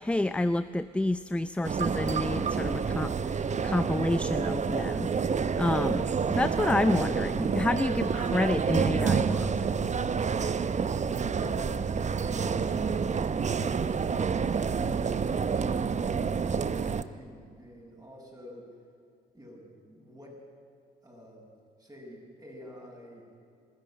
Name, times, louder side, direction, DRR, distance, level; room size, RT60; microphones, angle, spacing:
voice 1, 0.0-5.1 5.6-9.6, left 2 dB, 5° left, 13 dB, 0.6 m, -29 dB
sound 1, 1.6-17.0, right 6 dB, 35° right, 0.9 m, -28 dB
voice 2, 11.3-15.9 16.3-18.6 19.3-20.4 21.0-21.5 21.8-23.3, equal, 15° right, -1 dB, 7.5 m, -48 dB
22.0 x 14.0 x 9.2 m, 2.3 s
hypercardioid pair, 50°, 21 cm